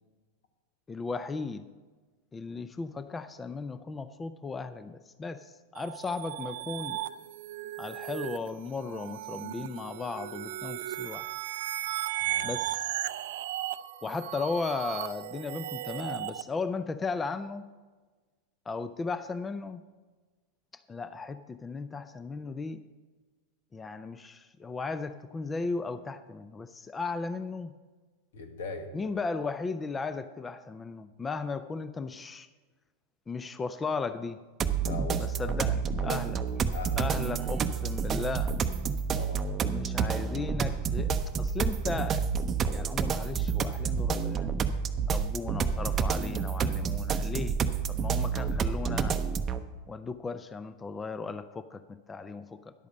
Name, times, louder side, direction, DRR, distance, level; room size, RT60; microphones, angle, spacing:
voice 1, 0.9-1.6 2.3-7.0 7.8-11.3 12.4-12.9 14.0-17.6 18.7-19.8 20.7-22.8 23.7-27.7 28.9-32.5 33.3-34.4 35.2-36.4 37.0-38.6 39.7-42.3 42.7-44.5 45.1-47.6 47.9-49.2 49.9-52.7, left 4 dB, 20° left, 12 dB, 0.4 m, -36 dB
sound 1, 5.7-16.4, right 14 dB, 70° right, 0.4 m, -36 dB
voice 2, 12.2-12.5 28.3-28.9 34.8-35.5 36.0-37.4 39.1-39.5, left 4 dB, 80° left, 6 dB, 1.6 m, -41 dB
sound 2, 34.6-49.6, right 6 dB, 30° right, 0.6 m, -29 dB
11.0 x 8.4 x 5.4 m, 1.3 s
hypercardioid pair, 110°, 0 cm